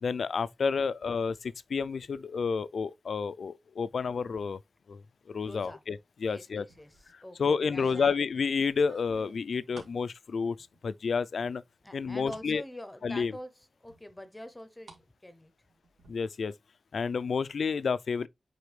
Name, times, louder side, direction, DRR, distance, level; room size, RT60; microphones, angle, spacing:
voice 1, 0.0-4.6 4.9-5.0 5.3-6.6 7.4-10.6 10.8-11.6 11.9-12.6 13.0-13.3 16.1-16.5 16.9-18.3, left 5 dB, 65° left, 0.4 m, -30 dB
voice 2, 5.4-5.8 6.2-8.1 11.8-15.5, left 1 dB, 10° left, 0.7 m, -46 dB
sound 1, 6.7-7.1 7.8-10.0 10.5-11.0 11.4-12.5 12.9-13.0 13.9-15.0 15.3-16.1, right 3 dB, 80° right, 2.3 m, -54 dB
8.2 x 4.3 x 3.2 m
wide cardioid pair, 175°, 0 cm